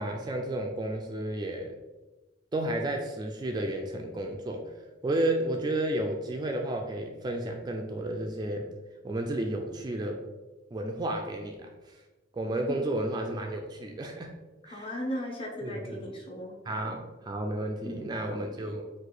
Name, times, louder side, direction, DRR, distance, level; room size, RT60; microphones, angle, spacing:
voice 1, 0.0-1.8 2.5-4.7 5.0-8.7 9.0-10.2 10.7-12.0 12.3-14.4 14.7-14.9 15.6-16.0 16.7-18.8, right 1 dB, 25° right, 2 dB, 0.3 m, -32 dB
voice 2, 14.6-16.8 17.8-18.7, equal, 30° left, -1 dB, 0.9 m, -38 dB
4.8 x 2.4 x 3.9 m, 1.2 s
head